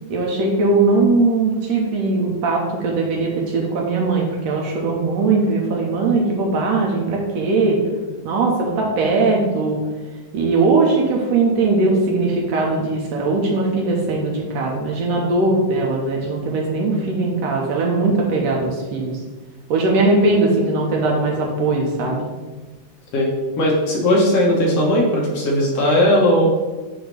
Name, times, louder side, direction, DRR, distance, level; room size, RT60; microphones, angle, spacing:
voice 1, 0.1-7.8 8.2-9.8 10.3-19.2 19.7-22.3, right 3 dB, 70° right, -1 dB, 1.8 m, -19 dB
voice 2, 23.6-26.5, left 1 dB, 65° left, -2 dB, 2.0 m, -17 dB
7.9 x 2.8 x 5.1 m, 1.3 s
omnidirectional pair, 3.4 m